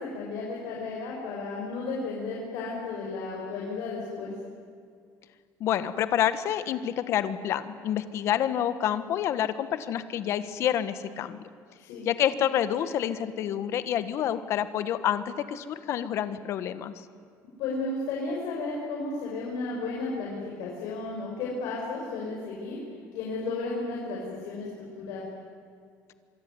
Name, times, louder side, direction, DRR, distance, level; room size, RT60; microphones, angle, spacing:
voice 1, 0.0-4.3 11.8-12.1 17.6-22.8 23.1-25.3, left 3 dB, 70° left, -3 dB, 6.1 m, -33 dB
voice 2, 5.6-11.5 12.0-17.0, left 10 dB, 45° left, 12 dB, 1.4 m, -28 dB
26.0 x 23.5 x 9.6 m, 2.2 s
cardioid pair, 165°, 6 cm